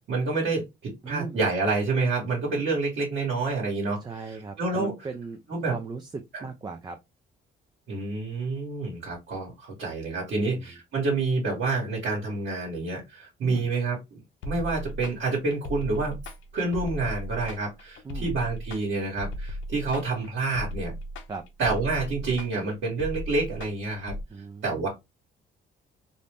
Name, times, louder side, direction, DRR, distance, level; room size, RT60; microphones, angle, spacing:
voice 1, 0.0-4.9 5.5-5.7 6.3-6.4 7.9-14.0 14.4-16.2 16.5-20.9 21.6-24.1 24.6-24.9, right 3 dB, 65° right, 1.3 m, -28 dB
voice 2, 1.0-1.4 4.0-7.0 10.3-10.7 13.4-13.7 18.0-18.3 21.3-21.5 24.3-24.9, right 4 dB, 20° right, 0.4 m, -38 dB
sound 1, 14.4-24.2, left 1 dB, 75° left, 0.6 m, -36 dB
2.6 x 2.0 x 3.3 m
cardioid pair, 90°, 20 cm